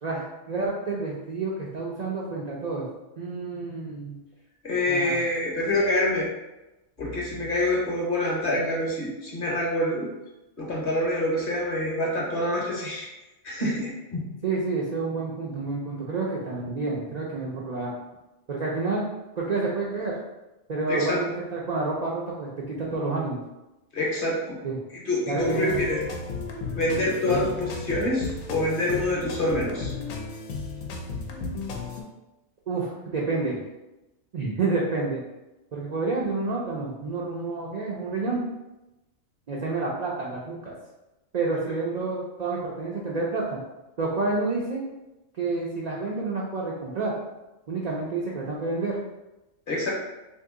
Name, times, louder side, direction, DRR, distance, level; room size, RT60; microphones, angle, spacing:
voice 1, 0.0-2.9 3.2-4.2 4.9-5.2 14.4-17.9 18.5-19.0 19.4-20.2 20.7-23.4 24.6-24.8 25.3-25.8 27.2-27.5 32.7-33.6 34.3-35.2 35.7-38.4 39.5-40.7 41.3-43.6 44.0-44.8 45.3-47.1 47.7-49.0, right 3 dB, 75° right, -4 dB, 0.3 m, -29 dB
voice 2, 4.6-6.3 7.0-10.1 10.6-13.1 13.4-14.2 20.9-21.2 23.9-24.6 25.1-26.0 26.7-29.9 49.7-49.9, left 1 dB, 45° left, -4 dB, 0.9 m, -26 dB
sound 1, 25.4-32.0, left 4 dB, 85° left, 1.0 m, -34 dB
2.8 x 2.7 x 3.6 m, 1.0 s
omnidirectional pair, 1.4 m